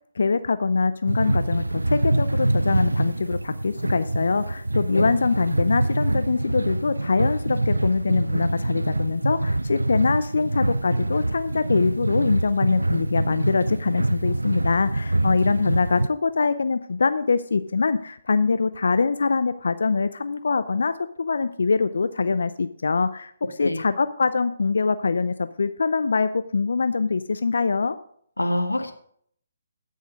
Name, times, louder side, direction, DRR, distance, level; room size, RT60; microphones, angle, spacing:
voice 1, 0.2-23.3 23.6-28.0, left 4 dB, 70° left, 12 dB, 0.6 m, -23 dB
sound 1, 1.1-16.1, right 2 dB, 90° right, 0.5 m, -25 dB
voice 2, 28.4-28.9, left 1 dB, 90° left, 5 dB, 1.7 m, -25 dB
16.0 x 6.5 x 5.1 m, 0.63 s
figure-of-eight pair, 140°, 0 cm